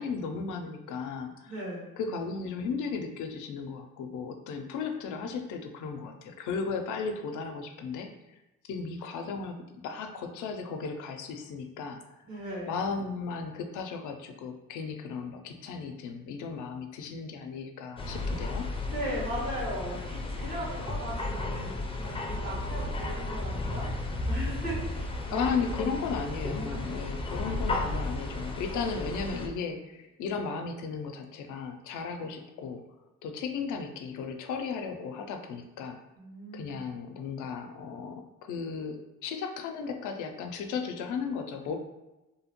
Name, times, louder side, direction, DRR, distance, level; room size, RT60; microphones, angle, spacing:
voice 1, 0.0-1.5 2.0-8.1 8.7-9.6 9.8-12.0 12.7-18.6 25.3-32.8 33.2-36.0 36.5-39.0 39.2-41.7, left 5 dB, 80° left, 5 dB, 0.5 m, -35 dB
voice 2, 1.5-1.8 12.3-12.7 18.8-25.4 26.5-27.2 36.2-36.8, right 1 dB, 75° right, -5 dB, 1.3 m, -38 dB
sound 1, 18.0-29.5, left 2 dB, 20° left, 0.4 m, -33 dB
2.7 x 2.1 x 2.9 m, 1.0 s
cardioid pair, 90°, 30 cm